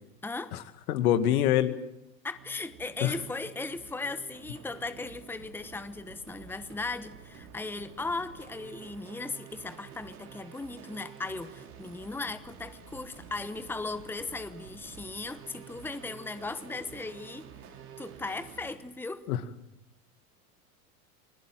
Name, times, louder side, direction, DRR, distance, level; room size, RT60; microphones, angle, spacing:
voice 1, 0.2-0.5 2.2-17.5 18.0-19.2, left 3 dB, 5° left, 12 dB, 1.1 m, -37 dB
voice 2, 0.9-1.7 3.0-3.1 19.3-19.4, left 11 dB, 65° left, 10 dB, 2.2 m, -24 dB
sound 1, 2.3-18.7, right 7 dB, 75° right, 5.0 m, -49 dB
29.0 x 20.5 x 7.6 m, 0.83 s
hypercardioid pair, 90°, 46 cm